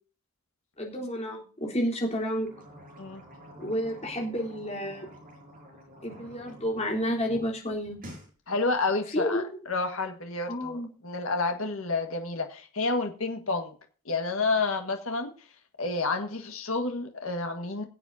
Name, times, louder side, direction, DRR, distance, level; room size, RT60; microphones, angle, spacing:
voice 1, 0.8-2.5 3.6-5.1 6.0-8.0 8.9-9.6 10.5-10.9, equal, 30° left, -1 dB, 3.7 m, -30 dB
sound 1, 2.4-7.4 7.8-8.3, equal, 40° right, 6.2 m, -48 dB
voice 2, 8.5-13.7 14.0-15.3 15.8-17.8, left 3 dB, 65° left, 4 dB, 1.7 m, -30 dB
21.0 x 8.1 x 2.8 m, 0.37 s
head